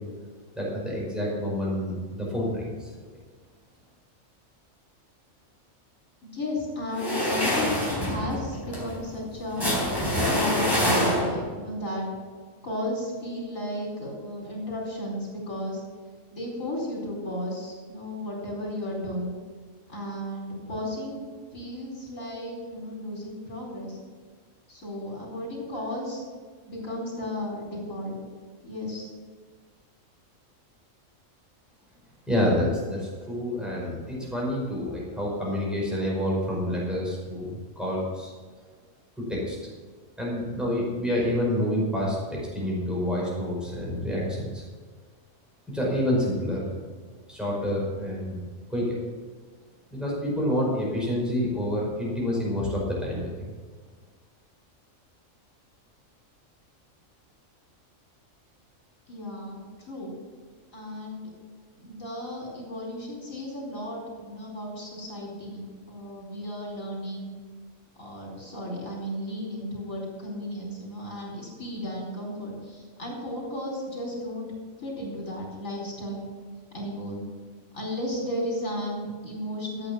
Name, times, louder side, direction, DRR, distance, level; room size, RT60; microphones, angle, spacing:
voice 1, 0.5-2.9 32.3-38.3 39.2-39.6 40.2-44.6 45.7-46.7 47.3-48.4 48.7-49.0 49.9-53.5, left 1 dB, ahead, -5 dB, 5.3 m, -28 dB
voice 2, 6.2-9.7 10.3-12.1 12.6-15.8 16.3-19.4 19.9-24.0 24.7-26.2 26.7-28.2 28.6-29.1 59.1-60.1 60.7-61.3 61.8-67.3 68.0-74.5 74.8-76.3 76.7-77.2 77.7-79.9, left 1 dB, 75° left, -3 dB, 4.8 m, -34 dB
sound 1, 6.9-11.6, left 1 dB, 15° left, 3.8 m, -26 dB
13.5 x 8.9 x 7.2 m, 1.5 s
omnidirectional pair, 1.4 m